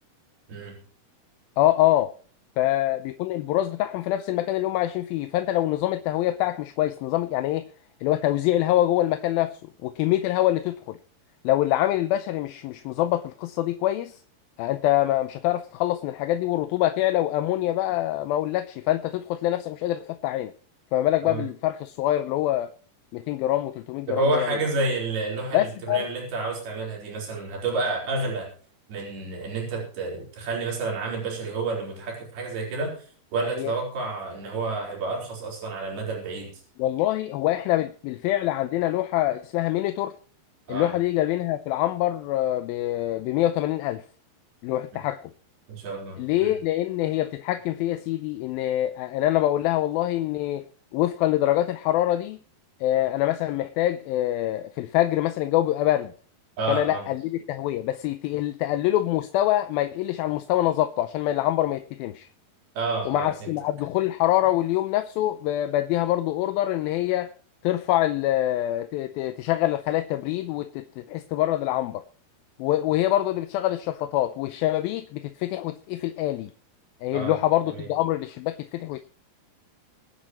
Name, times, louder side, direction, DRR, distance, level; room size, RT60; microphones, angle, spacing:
voice 1, 1.6-2.1 2.6-7.7 8.0-11.0 11.4-14.2 14.6-20.5 20.9-22.7 23.1-24.5 25.5-26.1 33.5-33.7 36.8-40.1 40.7-44.0 44.6-45.2 46.2-50.7 50.9-52.4 52.8-56.1 56.7-62.3 63.1-67.3 67.6-72.0 72.6-76.5 77.0-79.0, left 14 dB, 80° left, 2.4 m, -25 dB
voice 2, 24.1-28.5 28.9-32.9 33.3-36.5 40.7-40.9 45.7-46.5 56.6-57.0 62.8-63.5 77.1-77.4 77.6-77.9, right 3 dB, 70° right, 6.2 m, -29 dB
24.0 x 9.5 x 3.1 m
omnidirectional pair, 4.5 m